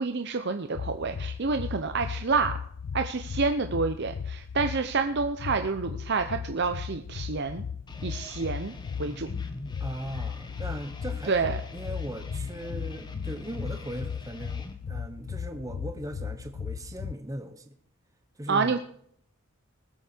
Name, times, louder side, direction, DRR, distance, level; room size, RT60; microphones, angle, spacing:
voice 1, 0.0-2.6 2.9-7.6 8.0-9.3 11.3-11.6 18.5-18.8, right 4 dB, 50° right, 7 dB, 0.7 m, -28 dB
sound 1, 0.7-17.1, left 6 dB, 80° left, 0.4 m, -36 dB
sound 2, 7.9-14.7, left 1 dB, 20° left, 1.2 m, -45 dB
voice 2, 9.8-17.7 18.4-18.8, right 1 dB, 15° right, 7 dB, 1.0 m, -39 dB
20.0 x 8.1 x 4.5 m, 0.62 s
head